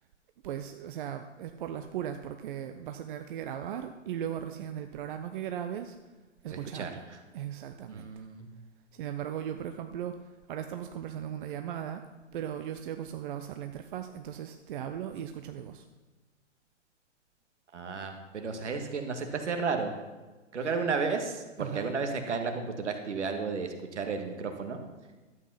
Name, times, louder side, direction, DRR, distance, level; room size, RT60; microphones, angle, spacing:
voice 1, 0.4-6.0 6.4-7.0 7.3-8.1 8.9-10.2 10.5-12.0 12.3-15.9 20.6-20.7 21.6-22.0, right 10 dB, 45° right, 7 dB, 0.7 m, -37 dB
voice 2, 6.5-7.2 7.9-8.5 17.7-19.9 20.5-24.8, right 4 dB, 70° right, 5 dB, 1.9 m, -33 dB
12.0 x 8.1 x 5.7 m, 1.2 s
figure-of-eight pair, 115°, 36 cm